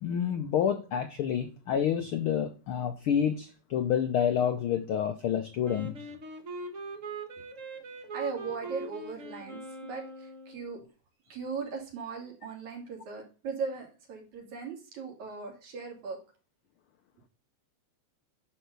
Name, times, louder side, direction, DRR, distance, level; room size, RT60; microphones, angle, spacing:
voice 1, 0.0-6.0, left 8 dB, 85° left, 1.1 m, -28 dB
Wind instrument woodwind instrument, 5.6-10.7, right 2 dB, 55° right, 0.8 m, -42 dB
voice 2, 8.1-10.8 11.3-16.2, right 5 dB, 70° right, 3.8 m, -38 dB
10.5 x 4.4 x 6.7 m
omnidirectional pair, 3.4 m